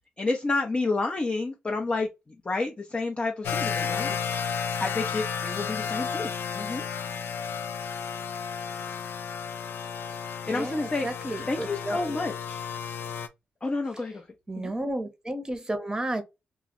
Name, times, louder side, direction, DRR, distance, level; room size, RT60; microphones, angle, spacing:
voice 1, 0.2-2.1 2.4-4.5 4.8-6.8 10.1-10.2 10.5-11.1 11.5-12.6 13.6-14.2 14.6-14.7, left 3 dB, 30° left, 0.6 m, -30 dB
sound 1, 3.4-13.3, left 7 dB, 80° left, 0.4 m, -32 dB
voice 2, 10.4-12.1 14.5-16.2, right 1 dB, 20° right, 0.8 m, -32 dB
2.3 x 2.1 x 3.7 m
cardioid pair, 65°, 4 cm